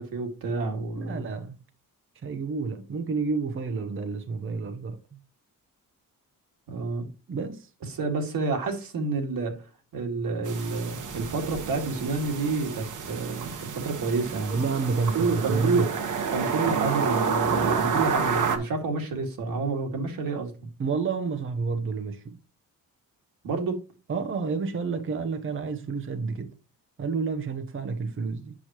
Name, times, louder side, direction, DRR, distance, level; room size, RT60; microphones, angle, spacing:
voice 1, 0.0-1.3 6.7-7.1 7.9-9.6 9.9-14.6 15.1-15.9 16.3-20.7 23.4-23.8, right 4 dB, 75° right, 2.2 m, -29 dB
voice 2, 0.9-1.6 2.2-5.2 7.3-7.7 14.5-15.9 20.8-22.4 24.1-26.6 27.0-28.5, right 4 dB, 35° right, 0.7 m, -29 dB
sound 1, 10.4-18.6, right 5 dB, 60° right, 1.3 m, -29 dB
8.3 x 6.1 x 2.9 m
cardioid pair, 130°, 34 cm